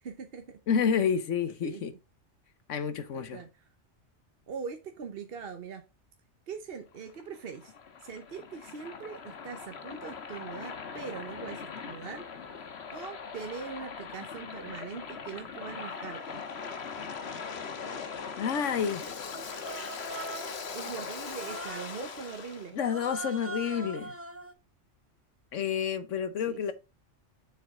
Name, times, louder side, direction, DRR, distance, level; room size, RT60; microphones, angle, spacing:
voice 1, 0.0-0.6 1.6-1.9 3.1-3.5 4.5-5.8 6.5-7.7 8.0-12.2 12.9-16.4 20.7-22.8 26.5-26.7, right 6 dB, 55° right, 1.0 m, -41 dB
voice 2, 0.7-1.9 2.7-3.4 18.4-19.1 22.7-24.1 25.5-26.7, left 7 dB, 90° left, 1.3 m, -29 dB
Waves surf, 6.9-22.7, left 5 dB, 60° left, 1.3 m, -40 dB
Human voice, 19.3-20.7 21.3-22.0 22.8-24.5, right 2 dB, 15° right, 0.5 m, -41 dB
7.0 x 6.4 x 3.5 m
omnidirectional pair, 1.2 m